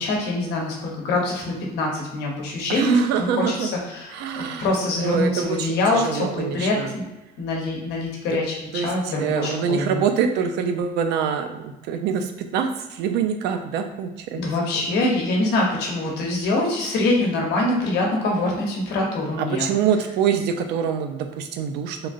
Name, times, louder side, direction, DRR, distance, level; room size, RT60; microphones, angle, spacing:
voice 1, 0.0-7.0 7.4-10.0 14.3-19.7, left 2 dB, 80° left, -1 dB, 0.8 m, -24 dB
voice 2, 2.7-3.7 4.1-4.7 5.0-6.9 8.7-14.4 14.7-14.8 19.4-22.1, right 7 dB, 80° right, 7 dB, 0.4 m, -25 dB
3.2 x 2.5 x 2.4 m, 1.0 s
cardioid pair, 110°, 17 cm